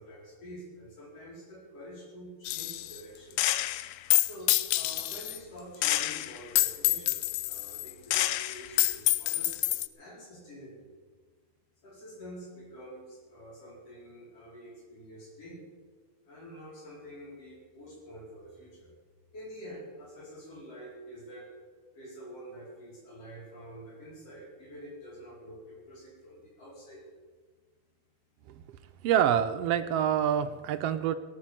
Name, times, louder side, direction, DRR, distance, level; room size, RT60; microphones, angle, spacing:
voice 1, 0.0-3.4 4.2-10.9 11.8-15.7 16.2-18.9 19.3-21.5 21.9-27.0, equal, 55° left, -4 dB, 5.7 m, -47 dB
Gunshot gunfire, 2.4-3.0 3.4-5.4 5.8-9.9, left 15 dB, 80° left, 1.9 m, -27 dB
voice 2, 29.0-31.1, right 9 dB, 75° right, 9 dB, 1.5 m, -26 dB
17.5 x 9.8 x 7.5 m, 1.4 s
omnidirectional pair, 3.3 m